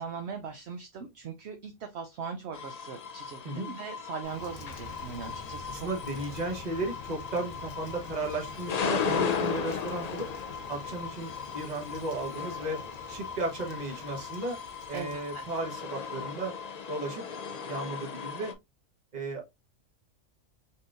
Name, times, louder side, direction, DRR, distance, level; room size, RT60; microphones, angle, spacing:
voice 1, 0.0-5.9 6.1-6.2 14.9-15.5, right 6 dB, 60° right, 0.8 m, -40 dB
sound 1, 2.5-18.5, left 6 dB, 60° left, 0.4 m, -37 dB
Rain, 4.2-16.6, left 3 dB, 80° left, 1.5 m, -47 dB
voice 2, 5.7-10.3 10.7-12.8 13.1-14.6 14.9-16.5 16.9-17.2 17.6-18.5 19.1-19.5, right 2 dB, 35° right, 1.2 m, -34 dB
4.2 x 3.6 x 2.4 m
omnidirectional pair, 1.4 m